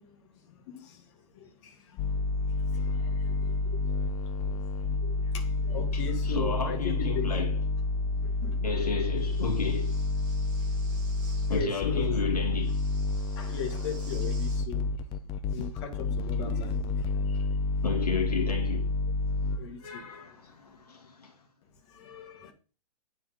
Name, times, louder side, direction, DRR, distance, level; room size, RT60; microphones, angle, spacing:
voice 1, 0.5-7.3 8.1-8.6 10.6-10.7 11.4-12.1 13.3-14.9 15.5-17.6 19.5-20.4 21.9-22.5, left 6 dB, 45° left, 1.8 m, -40 dB
sound 1, 2.0-19.6, left 3 dB, 30° left, 0.8 m, -29 dB
voice 2, 5.9-7.7 8.6-9.9 11.5-12.8 15.6-15.7 16.2-16.3 17.8-18.9 19.8-21.3, left 5 dB, 80° left, 2.3 m, -33 dB
Breathing, 9.1-11.6 12.6-14.7, right 4 dB, 20° right, 4.2 m, -53 dB
9.7 x 4.5 x 3.7 m
hypercardioid pair, 125°, 20 cm